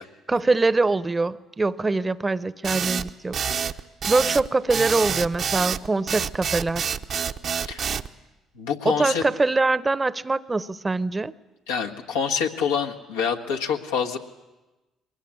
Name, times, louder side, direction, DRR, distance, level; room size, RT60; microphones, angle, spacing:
voice 1, 0.3-3.4 4.1-6.9 8.8-11.3, right 3 dB, 25° right, 16 dB, 0.9 m, -23 dB
sound 1, 2.6-8.1, right 7 dB, 55° right, 0.9 m, -27 dB
voice 2, 7.6-7.9 8.5-9.2 11.7-14.2, left 6 dB, 85° left, 1 dB, 1.6 m, -26 dB
22.5 x 20.5 x 8.5 m, 1.1 s
hypercardioid pair, 55°, 0 cm